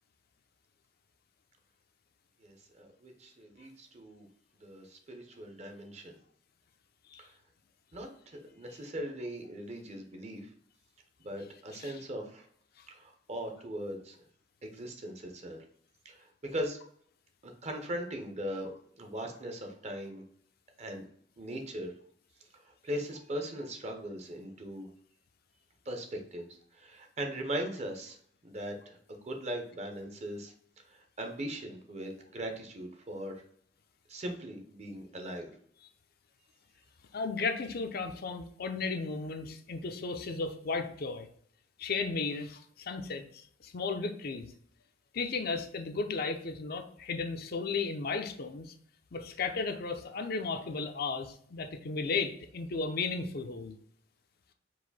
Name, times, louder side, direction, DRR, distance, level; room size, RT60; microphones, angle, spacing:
voice 1, 2.4-4.3 4.6-6.2 7.2-7.3 7.9-10.5 11.2-12.5 12.9-14.1 14.6-15.6 16.0-16.8 17.4-18.7 19.0-20.2 20.8-21.0 21.4-21.9 22.8-24.9 25.9-26.5 26.8-28.2 28.4-30.5 30.9-33.4 34.1-35.5, right 1 dB, 35° right, 4 dB, 0.8 m, -39 dB
voice 2, 37.1-41.3 41.8-44.5 45.1-48.7 49.1-53.7, left 4 dB, 55° left, 6 dB, 0.5 m, -35 dB
4.7 x 2.6 x 4.1 m, 0.62 s
head